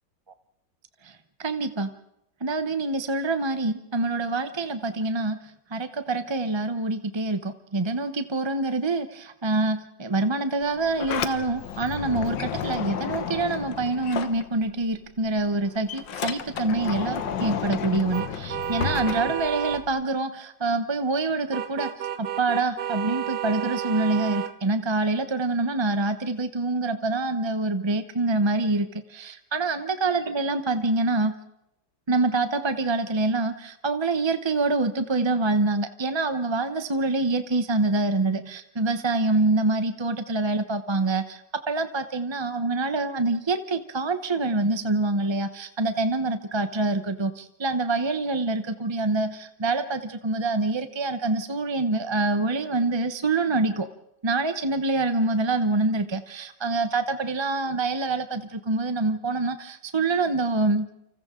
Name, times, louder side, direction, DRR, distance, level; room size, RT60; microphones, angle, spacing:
voice 1, 1.4-1.9 2.4-5.4 5.7-21.9 22.2-31.3 32.1-53.9 54.2-60.9, right 2 dB, 25° right, 9 dB, 0.6 m, -26 dB
Sliding door, 10.6-15.0 15.3-20.0, left 8 dB, 90° left, 1.8 m, -32 dB
sound 1, 18.1-19.8 21.5-24.5, right 11 dB, 60° right, 1.5 m, -31 dB
29.0 x 26.5 x 3.8 m, 0.84 s
omnidirectional pair, 1.9 m